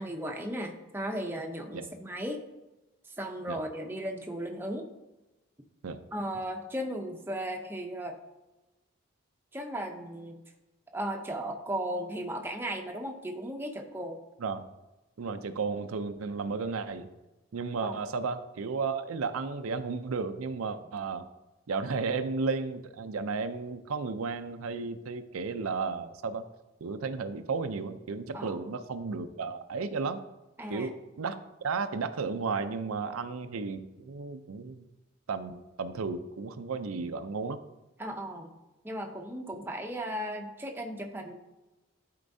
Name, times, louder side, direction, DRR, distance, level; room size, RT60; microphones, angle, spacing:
voice 1, 0.0-2.4 3.2-4.9 6.1-8.2 9.5-10.4 10.9-14.2 17.8-18.0 28.3-28.6 30.6-30.9 38.0-38.5 38.8-41.3, right 1 dB, 10° right, 3 dB, 0.6 m, -36 dB
voice 2, 15.2-17.1 17.5-21.3 21.7-26.4 26.8-30.2 30.7-31.4 31.6-34.8 35.3-37.6, right 4 dB, 90° right, 9 dB, 0.5 m, -33 dB
11.5 x 4.5 x 2.7 m, 1.0 s
head